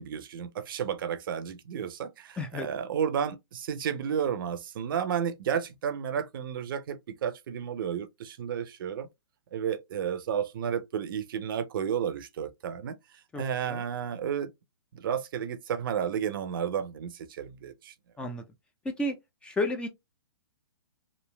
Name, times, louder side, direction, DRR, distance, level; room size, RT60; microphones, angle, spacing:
voice 1, 0.0-9.1 9.5-12.9 13.3-14.5 14.9-17.9, right 8 dB, 55° right, 0.6 m, -32 dB
voice 2, 2.4-2.7 13.3-13.4 13.7-13.8 18.2-18.4 18.9-19.2 19.4-19.9, left 1 dB, 10° left, 0.4 m, -31 dB
3.2 x 2.4 x 2.2 m
hypercardioid pair, 130°, 13 cm